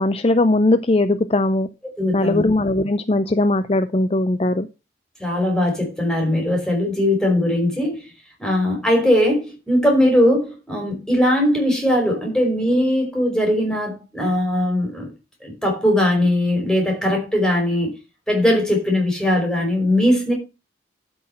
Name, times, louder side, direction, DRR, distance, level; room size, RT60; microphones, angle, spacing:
voice 1, 0.0-1.7 2.1-4.7, left 2 dB, 35° left, 0.5 m, -19 dB
voice 2, 2.0-2.4 5.2-8.0 8.4-15.1 15.4-17.9 18.3-20.3, left 1 dB, 5° left, 5.3 m, -19 dB
13.0 x 6.3 x 5.7 m
head